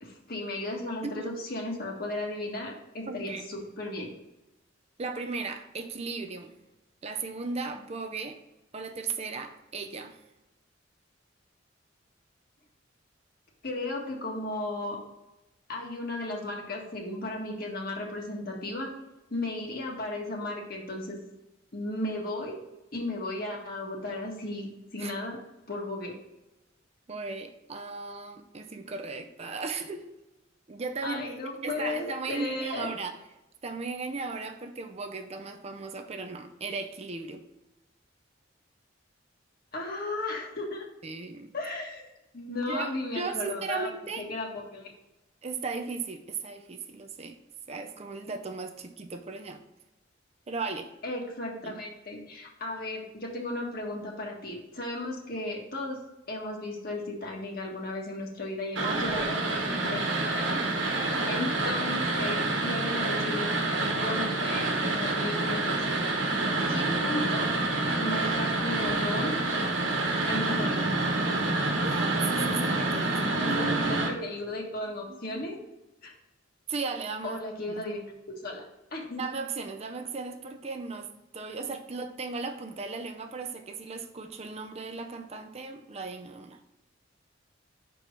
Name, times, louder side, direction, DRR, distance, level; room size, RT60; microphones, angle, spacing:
voice 1, 0.0-4.1 13.6-15.0 15.7-18.9 19.3-21.2 21.7-22.6 22.9-25.4 25.7-26.1 31.0-32.9 39.7-40.9 41.5-42.1 42.3-43.9 44.2-44.9 51.0-56.0 56.3-60.0 60.3-63.5 63.8-66.3 66.7-67.5 68.0-69.4 70.3-70.8 73.4-75.6 76.0-76.1 77.2-78.6 78.9-79.2, left 2 dB, 50° left, -1 dB, 1.6 m, -35 dB
voice 2, 1.0-1.3 3.0-3.5 5.0-6.5 7.0-8.4 8.7-10.2 19.4-19.5 25.0-25.1 27.1-30.2 30.7-33.2 33.6-37.4 41.0-41.5 42.7-44.2 45.4-47.4 47.7-49.6 50.5-50.9 51.6-51.8 58.8-59.2 60.9-61.5 71.8-74.2 75.1-75.2 76.7-77.4 79.2-86.6, right 4 dB, 35° right, 6 dB, 0.5 m, -36 dB
sound 1, 58.7-74.1, right 2 dB, 85° right, 1.4 m, -28 dB
5.8 x 4.6 x 5.1 m, 0.97 s
head